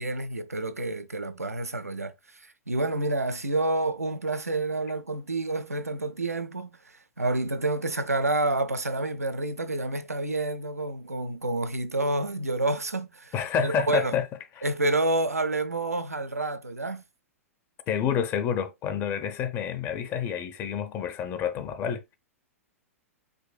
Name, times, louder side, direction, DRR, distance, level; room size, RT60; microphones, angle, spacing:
voice 1, 0.0-13.3 13.6-14.2 14.6-17.0, right 2 dB, 85° right, 0.6 m, -29 dB
voice 2, 13.3-14.3 14.6-14.7 17.9-22.0, left 8 dB, 30° left, 0.6 m, -28 dB
5.2 x 3.9 x 2.3 m
figure-of-eight pair, 105°, 8 cm